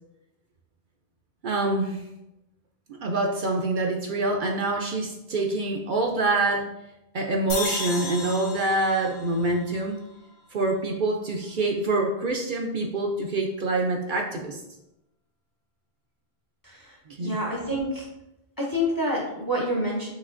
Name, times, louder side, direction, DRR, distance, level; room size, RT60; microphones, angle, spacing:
voice 1, 1.4-2.0 3.0-6.7 7.1-10.0 10.5-14.6 17.1-17.4, right 2 dB, 60° right, 1 dB, 0.6 m, -26 dB
sound 1, 7.5-10.8, left 3 dB, 90° left, 1.3 m, -35 dB
voice 2, 16.6-18.1 18.6-20.1, equal, 25° left, -2 dB, 0.6 m, -28 dB
6.3 x 2.9 x 2.5 m, 0.89 s
omnidirectional pair, 1.1 m